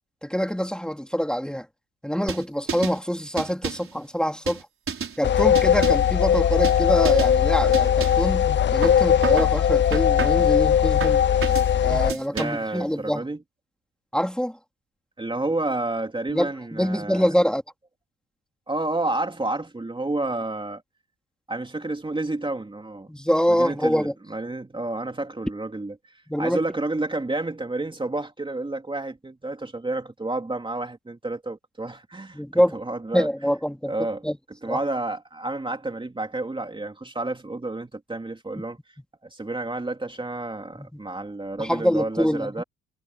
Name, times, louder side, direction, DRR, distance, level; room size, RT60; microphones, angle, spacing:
voice 1, 0.2-1.7 2.0-4.7 5.2-11.2 11.8-13.3 14.1-14.6 16.3-17.6 23.1-24.1 26.3-26.6 32.3-32.8 33.1-33.9 34.2-34.4 34.6-34.8 38.6-38.7 40.8-41.0 41.6-42.6, equal, 5° left, 3.0 m, -25 dB
sound 1, 2.3-3.0 3.4-3.9 4.5-5.2 5.5-6.1 6.6-6.8 7.1-7.4 7.7-8.3 8.8-9.5 9.9-10.5 11.0-11.7 12.1-12.7, right 6 dB, 45° right, 5.2 m, -31 dB
sound 2, 5.2-12.1, left 9 dB, 40° left, 0.5 m, -19 dB
voice 2, 12.3-13.4 15.2-17.3 18.7-20.8 21.5-23.1 23.5-33.3 33.9-34.2 34.6-38.8 39.2-42.6, right 2 dB, 15° right, 2.8 m, -30 dB
cardioid pair, 90°, 30 cm